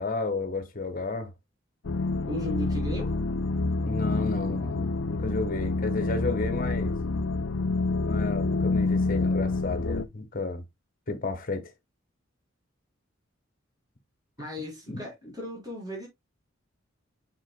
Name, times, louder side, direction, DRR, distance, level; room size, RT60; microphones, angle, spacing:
voice 1, 0.0-1.3 3.8-6.9 8.0-10.6 11.1-11.7 14.9-15.1, left 3 dB, 45° left, 1.4 m, -32 dB
sound 1, 1.8-10.0, left 3 dB, 85° left, 0.6 m, -27 dB
voice 2, 2.2-3.2 14.4-16.1, equal, 20° right, 4.1 m, -36 dB
7.5 x 6.2 x 2.2 m
head